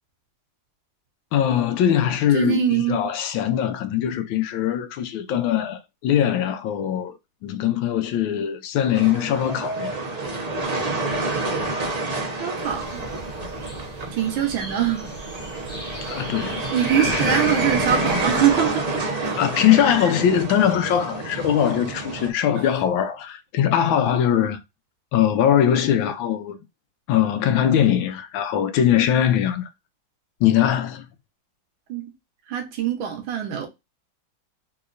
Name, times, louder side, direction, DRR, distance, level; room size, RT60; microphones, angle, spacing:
voice 1, 1.3-10.0 16.1-16.7 17.0-17.6 19.4-24.6 25.1-26.6 27.1-29.7 30.4-31.1, left 10 dB, 90° left, 1.4 m, -21 dB
voice 2, 2.3-3.0 12.4-13.0 14.1-15.1 16.7-19.4 31.9-32.1 32.5-33.7, right 9 dB, 85° right, 1.6 m, -23 dB
sound 1, 8.9-22.3, right 2 dB, 55° right, 0.4 m, -28 dB
sound 2, 12.6-18.5, right 1 dB, 5° left, 0.9 m, -39 dB
3.8 x 2.9 x 2.5 m
omnidirectional pair, 2.1 m